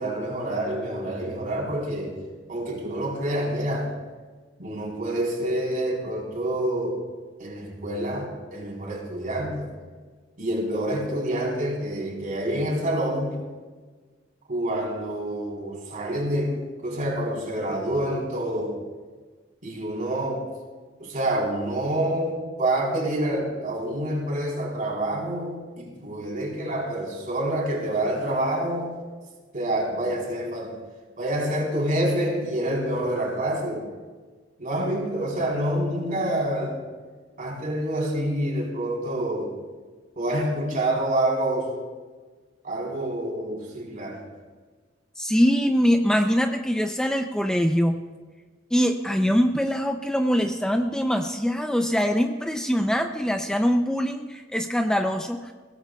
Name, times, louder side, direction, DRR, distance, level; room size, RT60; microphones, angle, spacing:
voice 1, 0.0-2.2 2.5-4.0 4.6-7.0 7.4-9.7 10.4-13.4 14.5-18.8 19.6-20.5 21.0-28.9 29.5-30.8 31.2-33.9 34.6-36.8 37.4-39.6 40.2-41.7 42.6-44.2, right 1 dB, 45° right, -2 dB, 4.0 m, -27 dB
voice 2, 45.2-48.0 48.7-55.5, equal, 5° left, 5 dB, 0.5 m, -23 dB
22.0 x 17.0 x 2.3 m, 1.4 s
head